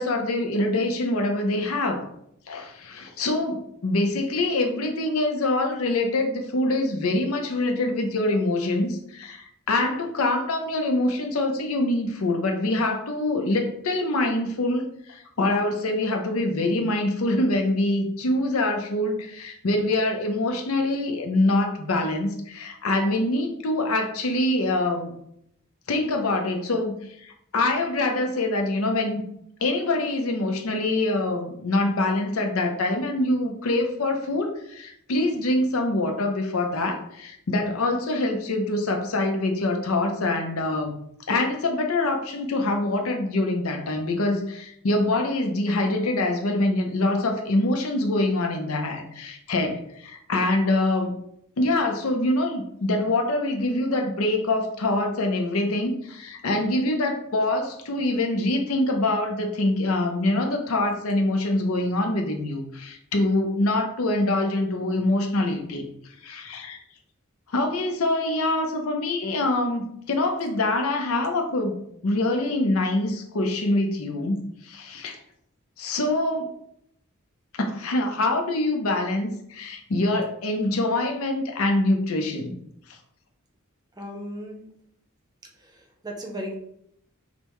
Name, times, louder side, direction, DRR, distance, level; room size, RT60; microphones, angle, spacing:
voice 1, 0.0-2.0 2.5-25.1 25.9-29.2 29.6-40.9 41.3-51.2 51.6-65.9 66.2-66.8 67.5-75.2 75.8-76.5 77.6-82.6 82.9-83.0, left 2 dB, 85° left, 4 dB, 0.7 m, -25 dB
voice 2, 84.0-84.6 86.0-86.6, equal, 20° right, 1 dB, 0.7 m, -34 dB
5.2 x 2.1 x 3.0 m, 0.72 s
head